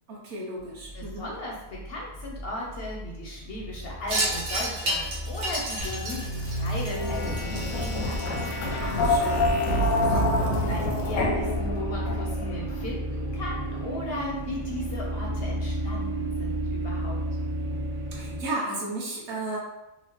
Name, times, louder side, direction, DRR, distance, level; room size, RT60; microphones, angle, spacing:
voice 1, 0.1-1.3 8.8-9.5 18.1-19.6, right 2 dB, 60° right, -3 dB, 1.0 m, -34 dB
sound 1, 0.6-18.4, right 1 dB, 30° right, 0.5 m, -33 dB
voice 2, 0.9-8.3 9.6-17.2, left 1 dB, 60° left, -2 dB, 0.6 m, -37 dB
Wind chime, 4.1-8.7, right 1 dB, 80° right, 1.2 m, -32 dB
sound 2, 5.8-12.5, left 1 dB, 90° left, 1.2 m, -27 dB
3.8 x 2.0 x 3.0 m, 0.94 s
omnidirectional pair, 1.5 m